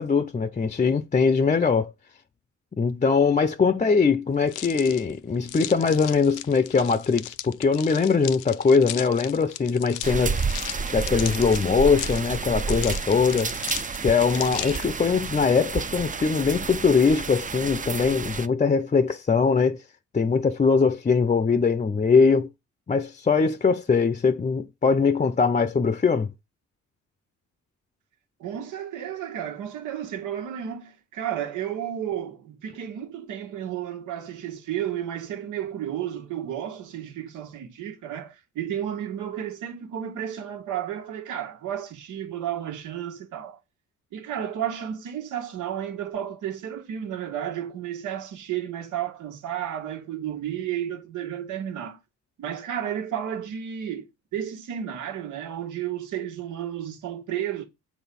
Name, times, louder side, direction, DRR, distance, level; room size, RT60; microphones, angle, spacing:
voice 1, 0.0-1.9 2.8-10.4 10.9-13.5 14.0-19.8 20.1-22.5 22.9-26.3, left 5 dB, 25° left, 0.6 m, -21 dB
sound 1, 4.5-15.0, left 14 dB, 85° left, 0.6 m, -37 dB
sound 2, 10.0-18.5, right 5 dB, 25° right, 0.6 m, -30 dB
voice 2, 28.4-43.6 44.1-52.0 52.4-57.6, right 10 dB, 80° right, 1.8 m, -32 dB
8.4 x 4.1 x 7.0 m
cardioid pair, 90°, 30 cm